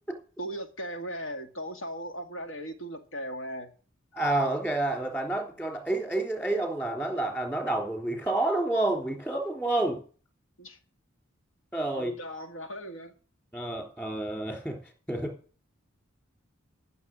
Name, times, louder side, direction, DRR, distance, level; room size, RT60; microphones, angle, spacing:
voice 1, 0.4-3.7 10.6-10.8 11.9-13.1, equal, 85° left, 5 dB, 2.0 m, -38 dB
voice 2, 4.1-10.0 11.7-12.1 13.5-14.8 15.1-15.3, right 2 dB, 10° left, 2 dB, 3.4 m, -29 dB
14.5 x 6.9 x 6.1 m, 0.40 s
head